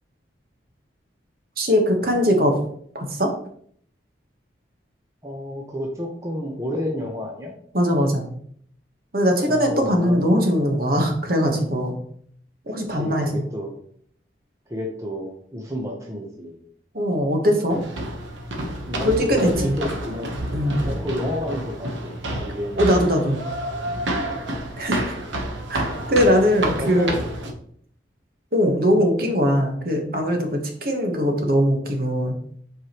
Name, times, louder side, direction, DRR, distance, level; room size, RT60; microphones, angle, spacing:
voice 1, 1.6-2.6 2.9-3.3 7.7-8.3 9.1-11.9 12.7-13.4 16.9-17.8 19.0-19.7 20.5-20.8 22.8-23.4 24.8-25.1 25.7-27.1 28.5-32.3, equal, 50° right, 3 dB, 1.2 m, -21 dB
voice 2, 5.2-7.5 9.5-10.2 12.9-13.7 14.7-16.6 18.9-20.3 20.8-22.8 24.3-24.4 26.8-27.5, left 1 dB, 15° right, 0 dB, 0.8 m, -30 dB
sound 1, 17.7-27.5, right 1 dB, 85° right, 1.1 m, -29 dB
7.9 x 4.8 x 3.0 m, 0.63 s
head